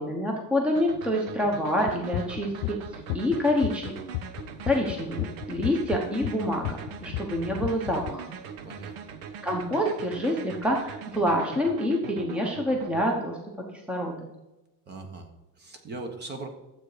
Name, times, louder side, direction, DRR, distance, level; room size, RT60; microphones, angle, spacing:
voice 1, 0.0-3.9 4.6-8.3 9.4-13.4 13.7-14.3, left 1 dB, 5° right, 1 dB, 0.9 m, -27 dB
sound 1, 0.7-13.1, right 7 dB, 80° right, 1.2 m, -41 dB
sound 2, 1.9-8.1, left 17 dB, 65° left, 0.5 m, -33 dB
voice 2, 8.6-9.0 14.9-16.5, right 3 dB, 30° right, 5 dB, 1.4 m, -40 dB
12.5 x 7.9 x 5.0 m, 1.0 s
cardioid pair, 175°, 35 cm